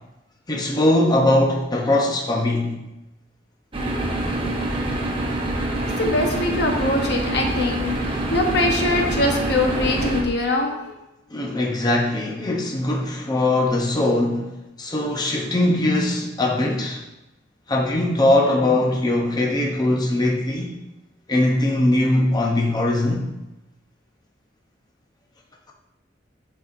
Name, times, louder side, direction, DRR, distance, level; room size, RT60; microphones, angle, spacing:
voice 1, 0.5-2.8 7.2-7.3 11.3-14.5 14.8-17.0 17.7-20.7 21.3-23.3, left 1 dB, 20° left, 0 dB, 0.6 m, -21 dB
sound 1, 3.7-10.2, right 1 dB, 30° right, 1.0 m, -25 dB
voice 2, 5.8-10.9, left 2 dB, 65° left, 2 dB, 1.0 m, -23 dB
10.5 x 4.2 x 2.5 m, 0.96 s
head